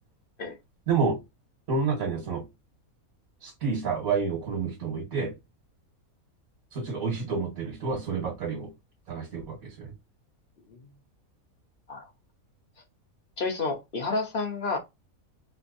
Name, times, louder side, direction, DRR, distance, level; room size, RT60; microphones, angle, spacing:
voice 1, 0.9-1.2 1.7-2.4 3.4-5.3 6.7-8.7 9.1-9.9, right 5 dB, 70° right, 1.8 m, -29 dB
voice 2, 13.4-14.8, left 3 dB, 45° left, 1.0 m, -30 dB
3.4 x 2.8 x 2.5 m
omnidirectional pair, 1.5 m